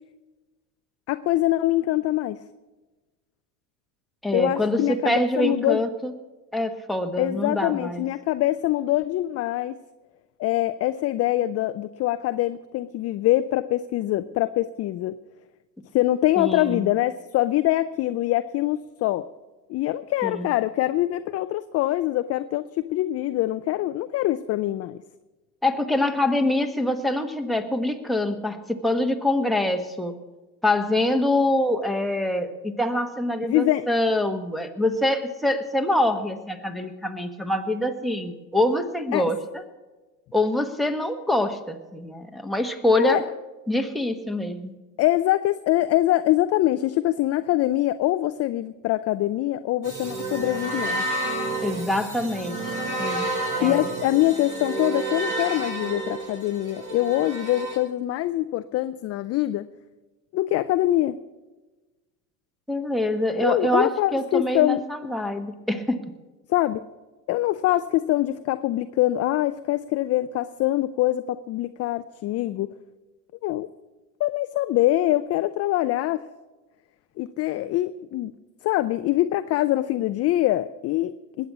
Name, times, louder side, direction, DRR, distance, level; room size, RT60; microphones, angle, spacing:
voice 1, 1.1-2.4 4.3-5.9 7.2-9.8 10.4-15.2 15.9-19.3 19.7-25.0 33.4-33.9 39.1-39.2 43.0-43.2 45.0-51.0 53.6-59.7 60.3-61.2 63.4-64.8 66.5-66.8 67.3-72.7 73.4-73.7 74.2-76.2 77.2-78.3 78.6-81.5, left 15 dB, 35° left, 12 dB, 0.5 m, -24 dB
voice 2, 4.2-6.1 6.5-8.0 16.4-16.8 20.2-20.5 25.6-30.1 30.6-39.6 40.3-43.2 43.7-44.7 51.6-52.7 53.0-53.3 53.6-53.9 62.7-66.0, left 1 dB, ahead, 4 dB, 1.4 m, -25 dB
sound 1, 49.8-57.8, right 2 dB, 40° right, 4.9 m, -30 dB
20.0 x 8.5 x 6.1 m, 1.2 s
hypercardioid pair, 80°, 49 cm